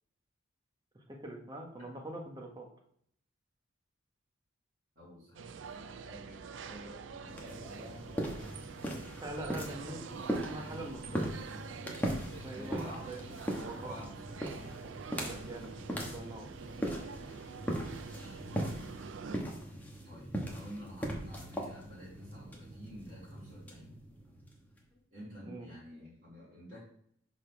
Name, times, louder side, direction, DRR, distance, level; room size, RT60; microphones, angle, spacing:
voice 1, 0.9-2.7 9.2-10.1 10.5-11.3 12.4-13.2 13.5-14.0 15.2-15.7 16.0-16.5 25.4-25.7, right 1 dB, 20° right, 1 dB, 1.0 m, -43 dB
voice 2, 4.9-8.9 10.9-11.3 12.5-13.3 13.7-14.8 15.1-16.8 18.0-18.6 19.4-23.9 25.1-26.8, equal, 45° right, -12 dB, 2.9 m, -51 dB
sound 1, 5.3-19.4, right 6 dB, 70° right, 0.4 m, -46 dB
sound 2, 7.3-24.8, equal, 10° left, 1.0 m, -39 dB
4.9 x 4.2 x 5.7 m, 0.67 s
head